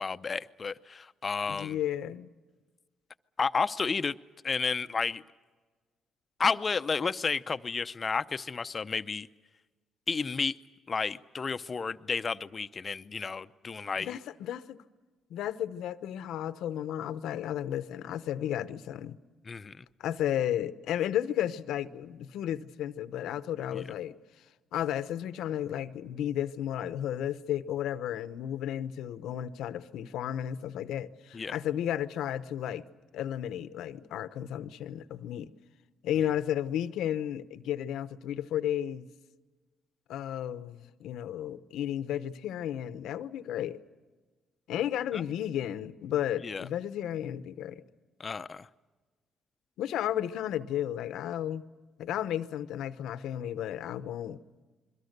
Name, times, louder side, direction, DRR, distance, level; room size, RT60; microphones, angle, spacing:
voice 1, 0.0-1.8 3.4-4.2 4.4-5.2 6.4-9.3 10.1-10.6 10.9-14.2 19.5-19.8 23.7-23.8 31.3-31.5 45.1-45.2 46.4-46.6 48.2-48.7, left 5 dB, 35° left, 0.7 m, -31 dB
voice 2, 1.5-2.3 14.0-14.8 15.3-19.2 20.0-24.2 24.7-32.8 33.1-35.5 36.0-39.1 40.1-43.8 44.7-47.8 49.8-51.6 52.0-54.4, left 11 dB, 85° left, 0.8 m, -33 dB
28.5 x 22.5 x 6.7 m
cardioid pair, 90°, 0 cm